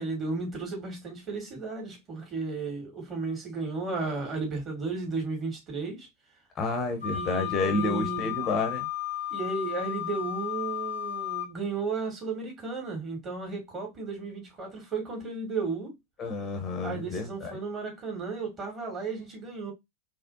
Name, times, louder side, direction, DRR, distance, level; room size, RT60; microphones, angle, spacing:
voice 1, 0.0-6.1 7.1-8.3 9.3-16.0 16.8-19.7, right 4 dB, 25° right, 2.4 m, -34 dB
voice 2, 6.5-8.9 16.2-17.6, left 3 dB, 25° left, 0.8 m, -30 dB
Wind instrument woodwind instrument, 7.0-11.5, left 12 dB, 70° right, 1.9 m, -34 dB
4.2 x 3.1 x 2.6 m
figure-of-eight pair, 90°, 0 cm